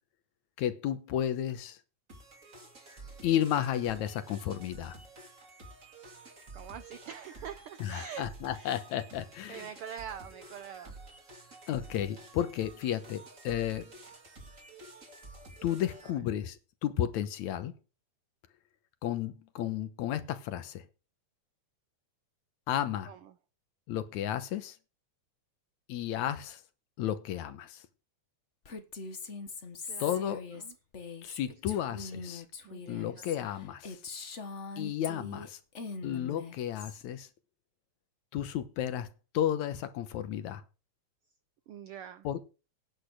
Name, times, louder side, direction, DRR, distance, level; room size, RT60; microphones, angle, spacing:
voice 1, 0.6-1.8 3.2-5.0 7.8-9.7 11.7-13.9 15.6-17.7 19.0-20.9 22.7-23.1 23.9-24.8 25.9-26.6 27.0-27.8 30.0-30.5 31.2-32.4 32.9-34.0 34.8-35.6 36.0-37.3 38.3-39.1 39.3-40.6 42.2-42.4, left 10 dB, 75° left, 2.4 m, -33 dB
sound 1, 2.1-16.1, right 2 dB, 25° right, 2.7 m, -51 dB
voice 2, 6.5-8.2 8.5-8.7 9.5-11.0 23.1-23.3 29.8-30.2 30.6-30.7 31.7-31.8 32.2-32.3 32.6-33.1 41.7-42.3, right 8 dB, 80° right, 1.2 m, -44 dB
Female speech woman speaking, 28.6-35.5 35.7-37.0, left 4 dB, 45° left, 0.9 m, -42 dB
10.0 x 8.7 x 6.4 m
omnidirectional pair, 3.4 m